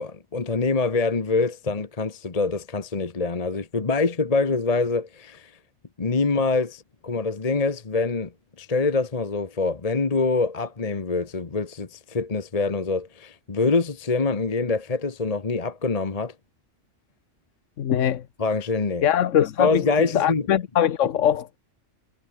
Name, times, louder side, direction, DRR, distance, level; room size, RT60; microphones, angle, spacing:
voice 1, 0.0-5.5 6.0-8.3 8.6-16.3 18.4-19.1 19.6-20.5, left 3 dB, 30° left, 1.3 m, -25 dB
voice 2, 17.8-18.2 19.0-21.6, left 10 dB, 85° left, 1.3 m, -22 dB
omnidirectional pair, 1.3 m